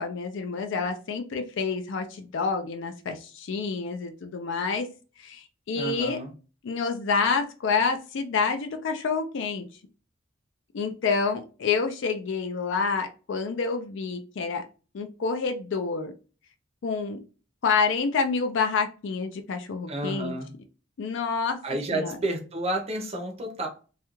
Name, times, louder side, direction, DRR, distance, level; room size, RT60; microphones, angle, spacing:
voice 1, 0.0-4.9 5.2-6.2 6.6-9.7 10.7-14.7 14.9-16.1 16.8-17.2 17.6-20.3 21.0-21.6 21.9-22.2, left 5 dB, 60° left, 0.4 m, -28 dB
voice 2, 5.8-6.3 19.9-20.5 21.6-23.7, right 1 dB, 30° right, 0.6 m, -30 dB
2.3 x 2.2 x 2.9 m
head